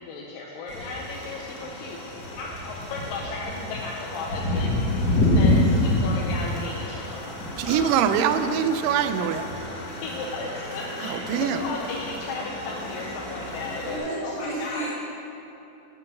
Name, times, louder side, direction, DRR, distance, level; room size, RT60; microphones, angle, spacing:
voice 1, 0.0-2.0 2.4-8.1 9.9-14.9, left 3 dB, 90° left, -3 dB, 2.4 m, -35 dB
sound 1, 0.7-14.0, left 1 dB, 45° left, 1.5 m, -28 dB
voice 2, 7.6-9.5 11.0-11.6, right 8 dB, 90° right, 9 dB, 2.2 m, -23 dB
voice 3, 13.8-14.9, right 2 dB, 40° right, -12 dB, 2.7 m, -32 dB
8.5 x 6.8 x 6.0 m, 2.9 s
omnidirectional pair, 3.9 m